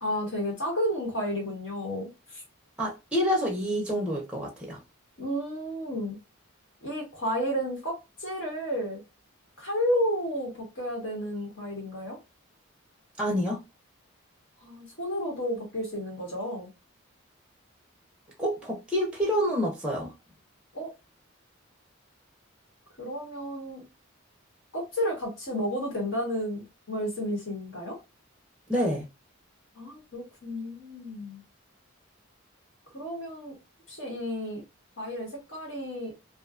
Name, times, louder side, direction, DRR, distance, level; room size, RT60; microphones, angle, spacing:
voice 1, 0.0-2.1 5.2-6.2 6.8-9.0 9.6-12.2 14.6-16.7 20.7-20.9 23.0-23.9 24.7-28.0 29.8-31.4 32.9-33.5 33.9-34.6 35.0-36.1, equal, 65° left, 1.2 m, -32 dB
voice 2, 2.8-4.8 13.2-13.6 18.4-20.1 28.7-29.1, equal, 5° right, 0.5 m, -27 dB
2.5 x 2.2 x 2.4 m
head